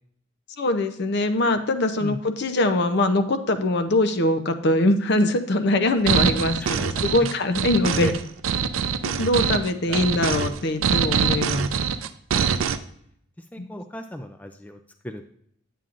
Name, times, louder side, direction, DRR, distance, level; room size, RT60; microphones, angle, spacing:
voice 1, 0.6-8.1 9.0-11.7 13.6-13.7, left 1 dB, 55° left, 8 dB, 0.6 m, -22 dB
sound 1, 6.1-12.8, right 6 dB, 80° right, 0.4 m, -24 dB
voice 2, 6.6-7.3 8.0-8.2 9.5-10.4 13.4-14.8 15.0-15.2, equal, 5° left, 5 dB, 0.3 m, -36 dB
9.1 x 8.4 x 2.5 m, 0.70 s
head